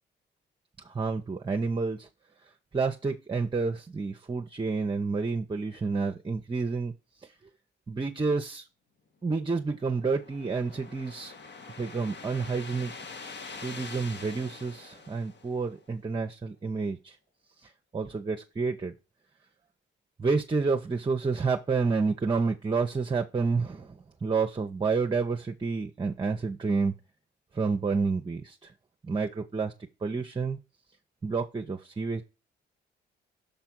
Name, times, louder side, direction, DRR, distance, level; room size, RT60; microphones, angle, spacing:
voice 1, 0.8-2.1 2.7-6.9 7.9-8.7 9.2-11.3 11.8-12.9 13.6-17.2 17.6-18.9 20.2-26.9 27.5-28.7 29.0-29.7 30.0-30.6 31.2-32.2, right 4 dB, 25° right, 0.9 m, -29 dB
sound 1, 9.4-15.9, left 4 dB, 60° left, 1.6 m, -45 dB
6.9 x 3.5 x 6.0 m
cardioid pair, 90°, 20 cm